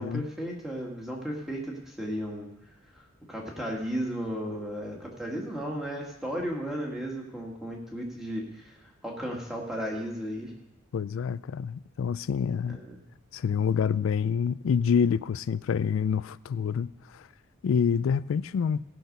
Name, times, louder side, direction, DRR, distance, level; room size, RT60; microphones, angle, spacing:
voice 1, 0.0-2.5 2.9-8.8 9.0-10.5 12.7-13.0, equal, ahead, 1.8 m, -34 dB
voice 2, 10.9-12.8 13.3-17.3 17.6-18.8, left 7 dB, 75° left, 0.3 m, -27 dB
16.0 x 6.0 x 5.3 m
head